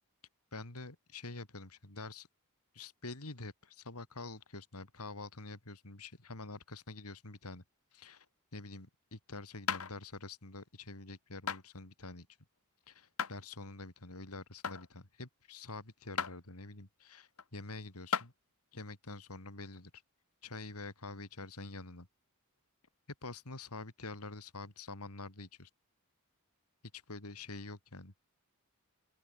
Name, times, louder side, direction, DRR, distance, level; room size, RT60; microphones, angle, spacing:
voice 1, 0.5-2.3 2.7-7.6 7.9-8.3 8.5-12.3 12.9-18.3 18.7-19.9 20.4-22.1 23.2-25.7 26.9-28.1, left 3 dB, 90° left, 3.2 m, -46 dB
sound 1, 9.7-9.9 11.5-11.6 13.2-13.4 14.6-14.9 16.2-16.3 17.4-17.5 18.1-18.3 19.8-19.9, left 6 dB, 70° left, 1.5 m, -34 dB
open air
head